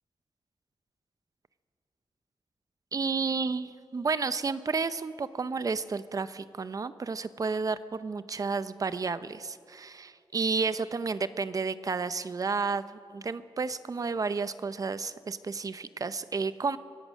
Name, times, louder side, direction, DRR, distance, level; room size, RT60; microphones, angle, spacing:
voice 1, 2.9-12.8 13.1-16.8, right 4 dB, 40° right, 14 dB, 0.6 m, -31 dB
25.0 x 16.5 x 6.3 m, 2.4 s
wide cardioid pair, 175°, 9 cm